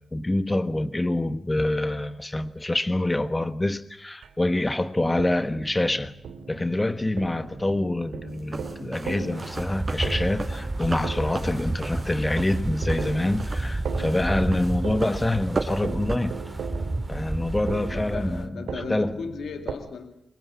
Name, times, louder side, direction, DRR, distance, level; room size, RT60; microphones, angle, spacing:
voice 1, 0.0-6.1 6.5-16.4 17.1-19.2, left 1 dB, 20° left, 1.3 m, -26 dB
sound 1, 1.6-1.7 2.4-2.5 3.3-3.4 4.2-4.4 5.2-19.7, right 6 dB, 90° right, 2.8 m, -39 dB
sound 2, 8.4-16.2, right 3 dB, 40° right, 5.3 m, -35 dB
Wind, 9.3-18.5, right 2 dB, 20° right, 2.3 m, -31 dB
voice 2, 17.9-20.3, left 5 dB, 80° left, 2.4 m, -37 dB
25.5 x 22.0 x 8.5 m
cardioid pair, 65°, 0 cm